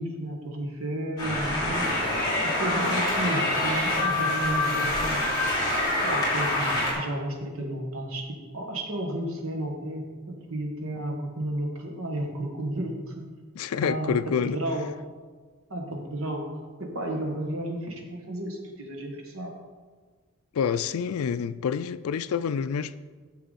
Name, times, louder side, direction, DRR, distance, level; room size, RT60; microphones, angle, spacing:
voice 1, 0.0-1.9 2.4-5.2 6.0-13.3 13.8-14.9 15.7-16.4 16.8-19.5, right 1 dB, 70° right, 1.5 m, -32 dB
sound 1, 1.2-6.9, left 1 dB, 20° left, 2.8 m, -26 dB
voice 2, 13.6-14.6 20.5-23.0, left 7 dB, 80° left, 0.4 m, -27 dB
9.7 x 6.8 x 4.1 m
head